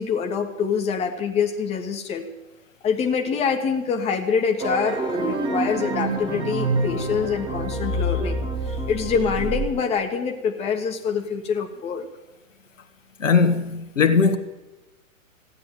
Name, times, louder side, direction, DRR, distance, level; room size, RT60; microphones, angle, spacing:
voice 1, 0.0-2.3 2.8-12.1, left 6 dB, 15° left, 1.4 m, -25 dB
sound 1, 4.6-9.7, right 2 dB, 10° right, 1.7 m, -26 dB
voice 2, 13.2-14.4, left 5 dB, 65° left, 1.6 m, -19 dB
15.5 x 10.0 x 9.2 m
figure-of-eight pair, 110°, 41 cm